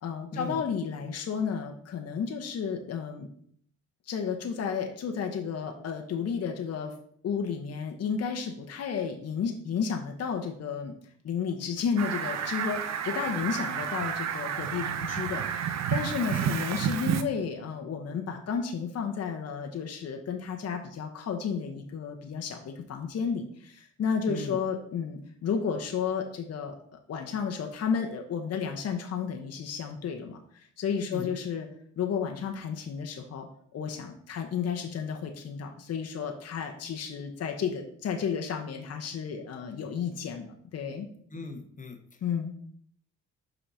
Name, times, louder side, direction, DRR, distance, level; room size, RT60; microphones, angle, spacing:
voice 1, 0.0-3.3 4.1-6.9 7.2-10.9 11.2-31.7 32.0-33.5 33.7-41.1 42.2-42.5, left 6 dB, 55° left, 3 dB, 0.9 m, -32 dB
Fowl, 12.0-17.2, right 8 dB, 60° right, 0.7 m, -30 dB
voice 2, 24.3-24.6 31.1-31.3 41.3-42.2, left 2 dB, 25° left, 6 dB, 1.1 m, -39 dB
5.7 x 4.2 x 5.5 m, 0.62 s
cardioid pair, 90°, 30 cm